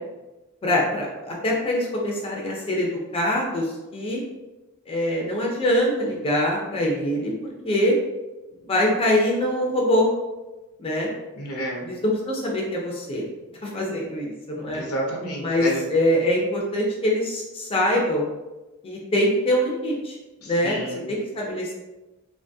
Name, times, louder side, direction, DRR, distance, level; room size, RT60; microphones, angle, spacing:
voice 1, 0.6-4.2 4.9-7.3 7.6-8.0 8.7-10.1 10.8-11.1 11.8-13.2 13.6-14.8 15.4-18.2 18.8-20.1 20.5-21.7, left 1 dB, 25° left, -2 dB, 0.4 m, -24 dB
voice 2, 11.3-11.9 14.7-15.8 20.4-21.0, right 1 dB, 80° left, 0 dB, 0.7 m, -30 dB
2.9 x 2.2 x 2.6 m, 1.1 s
head